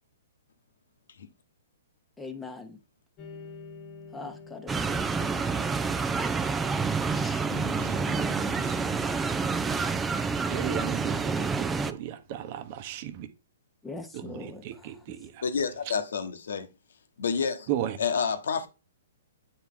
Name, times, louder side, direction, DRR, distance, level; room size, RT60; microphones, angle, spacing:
voice 1, 2.2-2.8 4.1-5.6 7.1-7.5 13.8-14.6, left 3 dB, 10° left, 1.1 m, -41 dB
sound 1, 3.2-10.5, left 4 dB, 30° left, 1.1 m, -46 dB
sound 2, 4.7-11.9, right 4 dB, 10° right, 0.6 m, -28 dB
voice 2, 7.8-8.8 10.5-13.3 14.1-15.4 17.7-18.0, right 11 dB, 45° right, 1.1 m, -36 dB
voice 3, 15.4-16.7 17.2-17.7 18.0-18.7, left 6 dB, 75° left, 1.2 m, -29 dB
9.1 x 4.5 x 3.8 m
hypercardioid pair, 130°, 0 cm